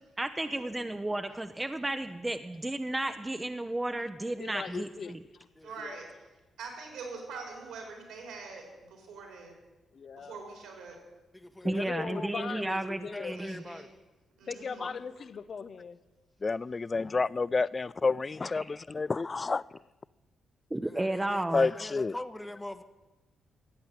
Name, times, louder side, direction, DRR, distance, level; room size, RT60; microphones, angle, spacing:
voice 1, 0.2-5.2 11.6-13.6 20.7-21.7, right 1 dB, 15° right, 0.8 m, -33 dB
voice 2, 4.4-5.2 5.8-6.0 9.9-10.4 11.6-13.4 14.5-16.0, left 6 dB, 55° left, 0.7 m, -39 dB
voice 3, 5.6-6.1 6.6-9.6 10.1-11.0 13.3-13.8 14.4-14.9, right 4 dB, 85° right, 4.0 m, -44 dB
voice 4, 11.3-13.9 14.8-14.9 20.8-22.8, left 1 dB, 10° left, 1.1 m, -43 dB
voice 5, 16.4-19.6 21.5-22.2, left 4 dB, 35° left, 0.3 m, -29 dB
14.5 x 8.6 x 7.6 m
supercardioid pair, 50°, 0 cm